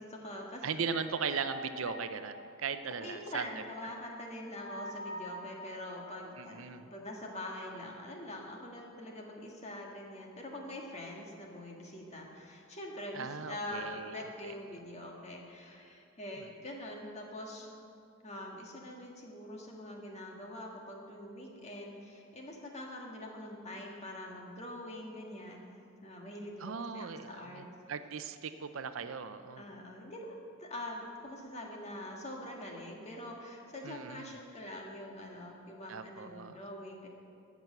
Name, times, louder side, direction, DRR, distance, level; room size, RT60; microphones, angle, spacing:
voice 1, 0.0-0.9 3.0-17.8 18.2-25.6 26.0-27.7 29.6-37.1, left 1 dB, 30° left, 0 dB, 1.6 m, -44 dB
voice 2, 0.6-3.5 6.4-6.9 13.1-14.5 26.6-27.6 27.9-29.6 33.8-34.3 35.9-36.6, right 6 dB, 65° right, 10 dB, 0.5 m, -38 dB
sound 1, 0.9-3.4 3.8-3.9 4.6-6.8, left 1 dB, 80° left, 1.4 m, -46 dB
13.5 x 6.1 x 7.8 m, 2.5 s
head